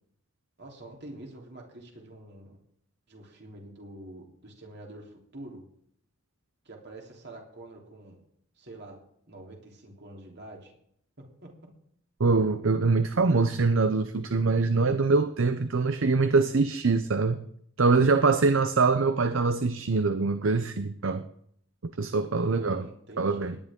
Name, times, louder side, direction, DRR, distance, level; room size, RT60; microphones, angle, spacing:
voice 1, 0.6-2.6 3.1-5.6 6.7-8.2 8.6-9.0 9.3-10.7 11.4-11.5 22.4-23.6, right 1 dB, 55° right, 0 dB, 3.4 m, -46 dB
voice 2, 12.2-17.4 17.8-21.2 21.8-22.9 23.2-23.6, right 4 dB, 70° right, 10 dB, 0.7 m, -24 dB
18.0 x 10.5 x 3.7 m, 0.68 s
head